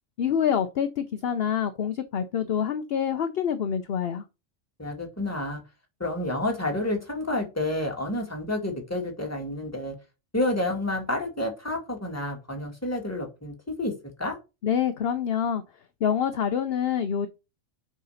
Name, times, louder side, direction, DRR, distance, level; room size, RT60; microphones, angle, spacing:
voice 1, 0.2-4.2 14.6-15.6 16.0-17.3, left 8 dB, 55° left, 9 dB, 0.8 m, -26 dB
voice 2, 4.8-5.6 6.0-9.9 10.3-13.9 14.2-14.4, left 1 dB, 10° left, 1 dB, 1.9 m, -29 dB
6.6 x 5.0 x 5.6 m, 0.28 s
omnidirectional pair, 1.4 m